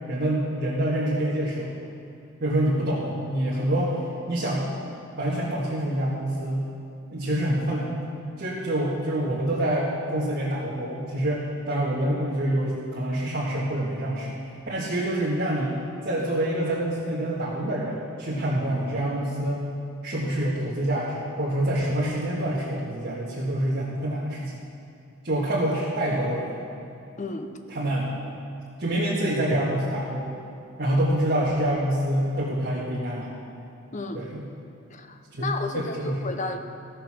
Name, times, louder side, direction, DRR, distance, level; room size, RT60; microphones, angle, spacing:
voice 1, 0.1-1.7 2.4-4.0 4.3-4.6 5.2-6.6 7.1-8.1 8.4-14.4 14.7-15.8 16.0-19.6 20.0-24.5 25.2-26.6 27.7-28.1 28.8-30.3 30.8-33.3 34.1-34.5 35.3-36.2, right 1 dB, 45° right, -7 dB, 1.7 m, -26 dB
voice 2, 27.2-27.5 33.9-34.3 34.9-36.6, left 2 dB, 35° left, 7 dB, 0.7 m, -32 dB
16.0 x 6.7 x 6.2 m, 2.6 s
head